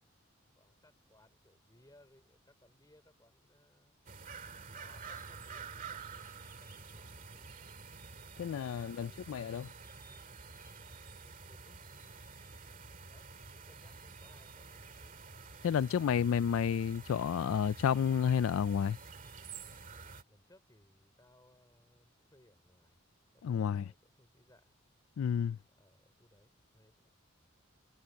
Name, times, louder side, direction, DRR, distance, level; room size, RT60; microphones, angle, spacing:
voice 1, 0.5-4.0 4.7-7.7 8.6-12.2 12.7-15.2 20.3-23.0 23.3-24.8 25.4-27.1, left 1 dB, 15° left, 3.5 m, -66 dB
sound 1, 4.1-20.2, right 5 dB, 40° right, 2.2 m, -49 dB
voice 2, 8.4-9.7 15.6-19.0 23.4-23.8 25.2-25.6, left 7 dB, 85° left, 0.3 m, -31 dB
head